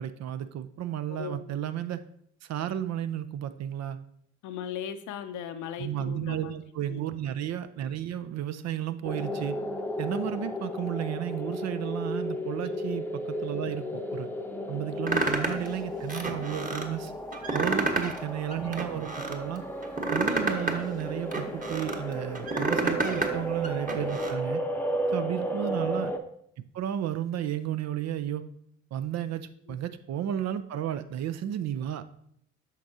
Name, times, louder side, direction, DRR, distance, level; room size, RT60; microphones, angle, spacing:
voice 1, 0.0-2.0 2.4-4.0 5.8-9.6 10.0-14.3 14.7-17.1 17.5-19.6 20.1-24.6 25.1-26.1 26.7-28.5 28.9-32.2, right 11 dB, 50° right, 11 dB, 0.6 m, -33 dB
voice 2, 1.1-1.5 4.4-6.5 6.9-7.2 12.6-12.8 15.1-15.2 17.7-18.2 23.1-23.3 25.5-25.7 29.7-29.8, left 8 dB, 60° left, 9 dB, 0.8 m, -39 dB
sound 1, 9.0-26.2, equal, 5° left, 0.8 m, -34 dB
sound 2, 15.1-15.7 16.1-16.8 17.3-18.2 18.5-19.4 19.8-22.0 22.3-23.3 23.6-24.3, right 2 dB, 25° right, 1.2 m, -29 dB
8.3 x 6.0 x 2.7 m, 0.69 s
hypercardioid pair, 50°, 35 cm